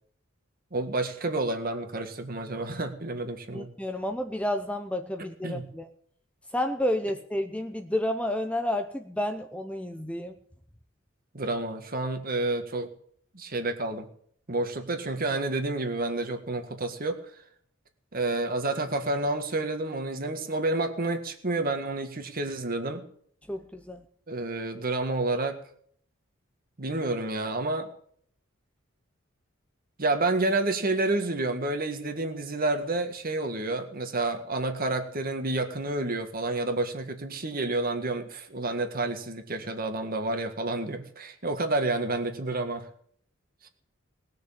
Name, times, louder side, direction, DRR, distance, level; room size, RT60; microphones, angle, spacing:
voice 1, 0.7-3.7 5.4-5.6 11.3-12.9 13.3-14.1 14.5-17.2 18.1-23.0 24.3-25.6 26.8-27.9 30.0-42.9 43.6-43.7, right 2 dB, 45° right, 6 dB, 1.9 m, -29 dB
voice 2, 3.5-5.9 6.5-10.3 23.5-24.0, left 1 dB, 5° left, 6 dB, 0.8 m, -30 dB
19.5 x 6.6 x 8.6 m, 0.62 s
head